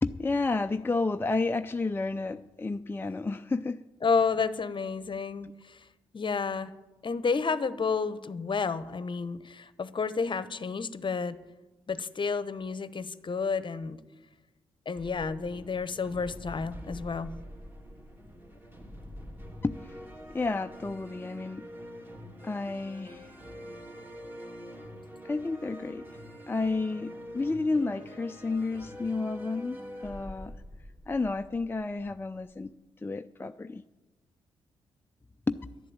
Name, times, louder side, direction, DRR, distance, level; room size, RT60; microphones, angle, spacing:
voice 1, 0.0-3.8 19.6-20.0 20.3-21.7 22.4-23.3 25.2-26.1 26.5-30.5 31.1-32.7 33.0-33.8 35.5-35.6, left 3 dB, 15° left, 7 dB, 0.5 m, -31 dB
voice 2, 4.0-5.8 6.1-6.7 7.0-11.4 11.9-14.0 14.9-17.3, left 5 dB, 40° left, 15 dB, 1.0 m, -30 dB
sound 1, 14.9-32.6, equal, 15° right, 2.7 m, -45 dB
11.0 x 11.0 x 8.7 m, 1.1 s
hypercardioid pair, 40°, 13 cm